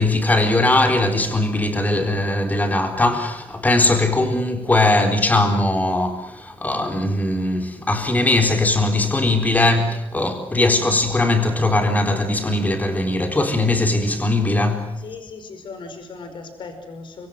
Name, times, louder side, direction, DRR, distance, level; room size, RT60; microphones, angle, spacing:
voice 1, 0.0-14.9, left 2 dB, 15° left, 3.9 m, -20 dB
voice 2, 15.0-17.3, left 4 dB, 55° left, 5.4 m, -37 dB
26.0 x 23.5 x 7.7 m
wide cardioid pair, 145°, 10 cm